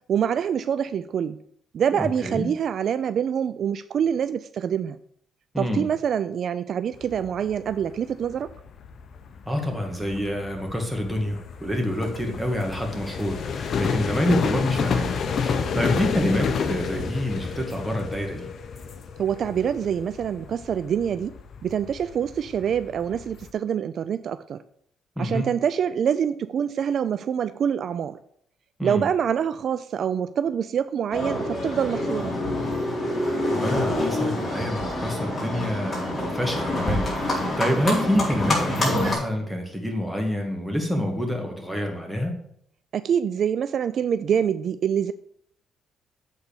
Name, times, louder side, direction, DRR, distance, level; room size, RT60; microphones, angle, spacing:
voice 1, 0.1-1.4 1.7-5.0 5.6-8.5 19.2-21.3 21.6-24.6 25.2-28.2 28.8-32.4 42.9-45.1, right 8 dB, 60° right, 0.3 m, -25 dB
voice 2, 2.0-2.5 5.5-5.9 9.5-18.5 25.2-25.5 28.8-29.1 33.5-42.3, equal, ahead, 2.0 m, -27 dB
sound 1, 6.9-23.5, left 6 dB, 60° left, 0.7 m, -31 dB
Livestock farm animals working animals, 31.1-39.1, left 1 dB, 30° left, 3.9 m, -26 dB
8.0 x 4.1 x 6.7 m
cardioid pair, 90°, 0 cm